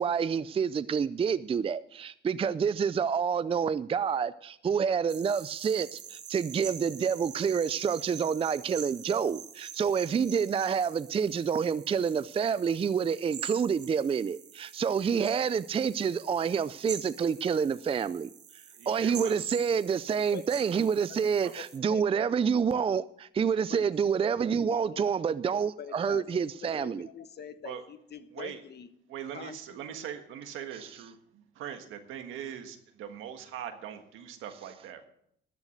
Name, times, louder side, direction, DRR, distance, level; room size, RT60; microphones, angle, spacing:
voice 1, 0.0-18.3 18.9-27.1 30.8-30.9, right 6 dB, 30° right, 0.4 m, -28 dB
sound 1, 5.1-21.8, right 8 dB, 60° right, 1.5 m, -45 dB
voice 2, 18.7-19.4 21.4-21.5 27.6-27.8 28.3-28.6 29.1-35.1, right 9 dB, 90° right, 1.5 m, -41 dB
voice 3, 24.7-25.4 25.8-28.9 29.3-29.8, left 8 dB, 55° left, 1.2 m, -44 dB
13.0 x 8.3 x 6.4 m
cardioid pair, 90°, 20 cm